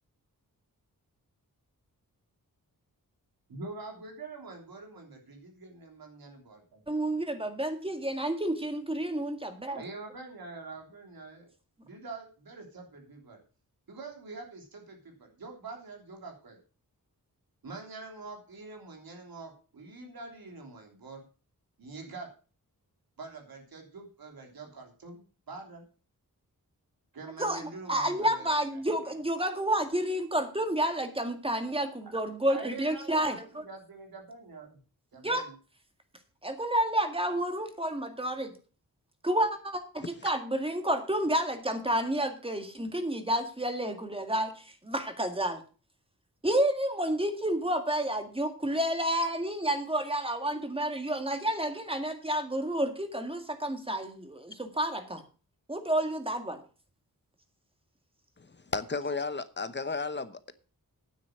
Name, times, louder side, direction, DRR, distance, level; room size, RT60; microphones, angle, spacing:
voice 1, 3.5-6.8 9.8-11.5 11.8-13.4 13.9-16.6 17.6-21.2 21.8-22.3 23.2-25.8 27.1-28.8 32.5-34.8 35.1-35.6, right 3 dB, 80° right, 2 dB, 3.3 m, -45 dB
voice 2, 6.9-9.8 27.4-27.6 27.9-33.4 35.2-35.4 36.4-38.5 39.2-45.6 46.4-55.2 55.7-56.6, right 1 dB, 15° right, 6 dB, 1.9 m, -30 dB
voice 3, 58.4-60.5, left 4 dB, 30° left, 13 dB, 0.9 m, -34 dB
9.7 x 7.6 x 6.4 m, 0.37 s
wide cardioid pair, 100°, 35 cm